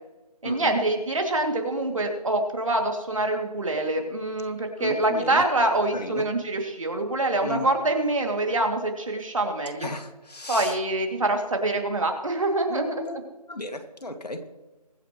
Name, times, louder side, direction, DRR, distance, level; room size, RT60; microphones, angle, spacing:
voice 1, 0.4-9.9 10.5-13.0, right 2 dB, 50° right, 3 dB, 2.6 m, -25 dB
voice 2, 4.8-5.4 5.9-6.2 7.4-7.7 9.8-10.7 12.7-13.2 13.5-14.4, left 2 dB, 75° left, 6 dB, 2.2 m, -34 dB
23.0 x 9.7 x 3.1 m, 1.1 s
figure-of-eight pair, 175°, 21 cm